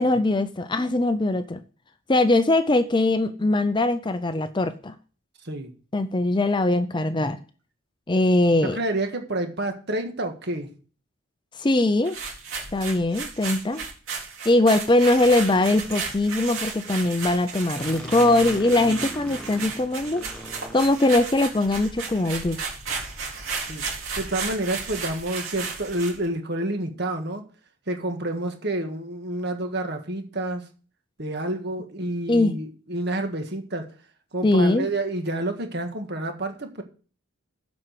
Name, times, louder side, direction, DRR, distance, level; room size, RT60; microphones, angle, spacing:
voice 1, 0.0-1.6 2.1-5.0 5.9-7.4 8.1-8.8 11.6-12.2 12.7-13.8 14.5-20.5 20.7-22.6 32.3-32.5 34.4-34.9, left 2 dB, 20° left, 0.5 m, -21 dB
voice 2, 8.6-10.8 23.7-23.9 24.2-27.4 27.9-30.7 31.2-33.9 34.3-36.8, right 1 dB, 50° right, 1.7 m, -29 dB
sound 1, 12.0-26.2, right 5 dB, 75° right, 4.1 m, -34 dB
sound 2, 17.7-21.7, equal, 5° left, 1.4 m, -39 dB
7.7 x 6.2 x 7.7 m
head